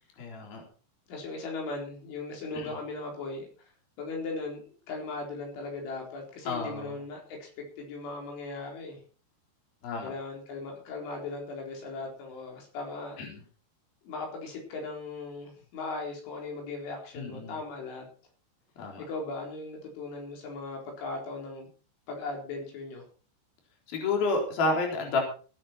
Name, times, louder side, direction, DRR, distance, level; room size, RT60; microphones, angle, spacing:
voice 1, 0.2-0.6 2.6-2.7 6.5-6.9 9.8-10.1 13.2-13.4 17.2-17.6 18.8-19.0 23.9-25.2, left 3 dB, 55° left, 1 dB, 5.6 m, -30 dB
voice 2, 1.1-3.7 4.0-9.0 10.0-13.2 14.0-18.1 19.0-21.7 22.1-23.0, left 3 dB, 90° left, 0 dB, 6.5 m, -38 dB
19.0 x 10.0 x 4.5 m, 0.39 s
omnidirectional pair, 5.3 m